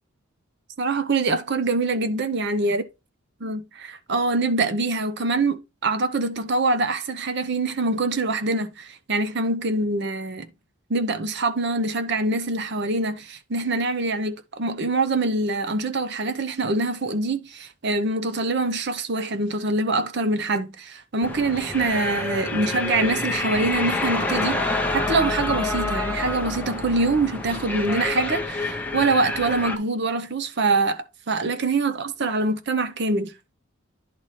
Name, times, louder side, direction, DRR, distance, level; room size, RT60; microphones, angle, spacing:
voice 1, 0.8-2.8 3.4-10.5 10.9-33.3, right 3 dB, 50° right, 0.7 m, -24 dB
sound 1, 21.2-29.8, left 2 dB, 5° left, 0.7 m, -27 dB
10.5 x 4.1 x 3.1 m
head